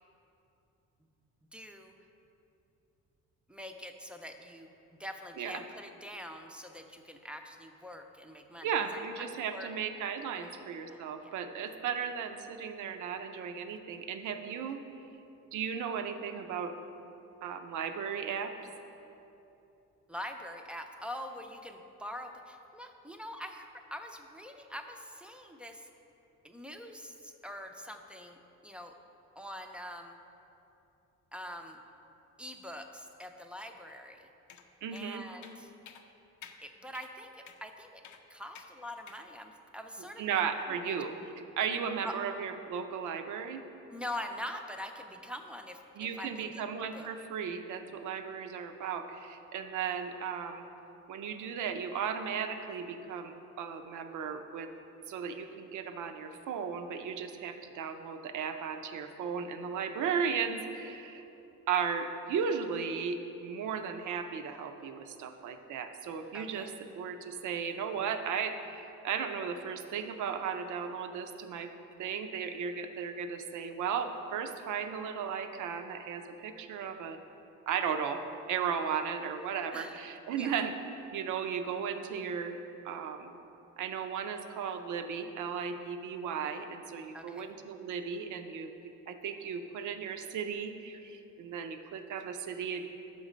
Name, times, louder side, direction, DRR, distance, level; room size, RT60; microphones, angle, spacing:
voice 1, 1.5-1.9 3.5-4.7 5.0-9.7 10.3-10.6 10.9-11.3 20.1-25.9 26.4-28.9 29.4-30.2 31.3-31.8 32.4-34.3 34.9-35.7 36.6-38.0 38.3-40.2 40.7-40.9 42.0-42.2 43.9-47.1 66.3-66.8 79.7-80.0 80.4-80.6 87.1-87.6, left 1 dB, 5° right, 4 dB, 0.4 m, -44 dB
voice 2, 8.6-14.8 15.5-16.7 17.4-18.5 34.8-35.2 40.2-41.1 41.6-43.6 46.0-50.6 51.1-54.7 55.1-61.2 61.7-66.7 67.0-71.7 72.0-77.2 77.7-78.2 78.5-80.7 81.1-82.6 82.8-83.4 83.8-88.7 89.1-92.9, right 7 dB, 75° right, 7 dB, 0.6 m, -35 dB
sound 1, 34.5-34.7 35.0-35.1 35.4-35.6 35.9-36.0 36.4-36.6 36.9-37.1 37.5-37.6 38.0-38.2 38.5-38.7 39.1-39.2, left 8 dB, 75° left, 0.6 m, -51 dB
6.3 x 5.4 x 5.0 m, 2.9 s
cardioid pair, 90°, 30 cm